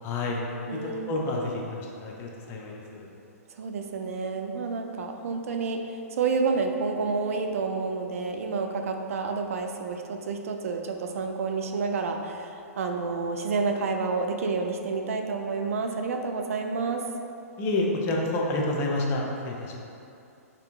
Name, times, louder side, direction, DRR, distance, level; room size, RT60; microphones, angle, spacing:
voice 1, 0.0-0.4 0.7-3.1 17.6-19.7, left 2 dB, 30° left, -2 dB, 0.5 m, -29 dB
voice 2, 0.7-1.1 3.6-5.9 6.1-17.0, right 4 dB, 65° right, 4 dB, 0.3 m, -29 dB
3.3 x 2.9 x 3.5 m, 2.7 s
figure-of-eight pair, 120°, 8 cm